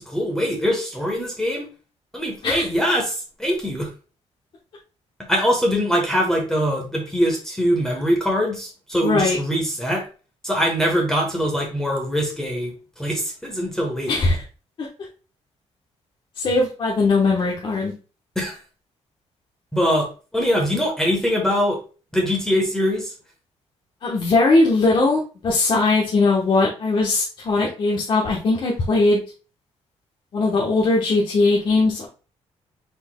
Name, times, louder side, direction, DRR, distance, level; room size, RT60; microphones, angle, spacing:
voice 1, 0.0-1.7 2.1-3.9 5.3-10.0 10.4-14.2 18.3-18.6 19.7-21.8 22.1-23.1, equal, 5° left, 0 dB, 1.2 m, -22 dB
voice 2, 9.0-9.4 14.1-14.4 16.4-17.9 24.0-29.2 30.3-32.1, left 3 dB, 45° left, -4 dB, 1.1 m, -19 dB
5.4 x 4.3 x 2.2 m, 0.35 s
cardioid pair, 165°, 12 cm